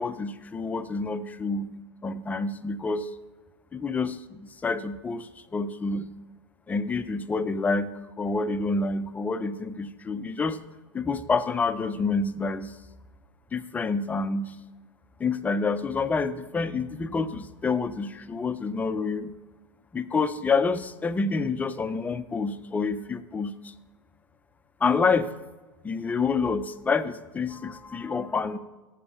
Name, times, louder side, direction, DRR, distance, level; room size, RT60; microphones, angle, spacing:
voice 1, 0.0-3.1 3.7-6.1 6.7-7.9 8.2-10.6 10.9-12.8 13.5-14.6 15.2-19.3 19.9-23.5 24.8-25.3 25.8-28.6, left 4 dB, 10° left, 11 dB, 0.4 m, -28 dB
7.4 x 6.9 x 5.6 m, 1.2 s
hypercardioid pair, 120°, 15 cm